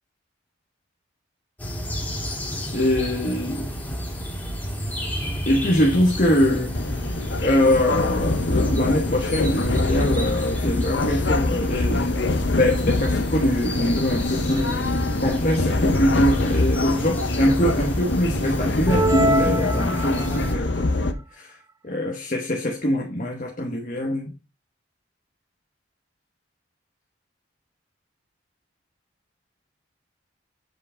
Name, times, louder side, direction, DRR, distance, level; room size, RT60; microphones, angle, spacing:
sound 1, 1.6-20.5, equal, 10° left, 2.4 m, -31 dB
voice 1, 2.7-3.7 5.5-6.8 7.4-12.2 12.6-21.5 21.8-24.3, left 1 dB, 40° left, 1.2 m, -23 dB
sound 2, 6.7-21.1, left 2 dB, 65° left, 0.8 m, -25 dB
sound 3, 18.9-20.5, right 1 dB, 15° right, 0.5 m, -24 dB
8.0 x 4.8 x 3.9 m
head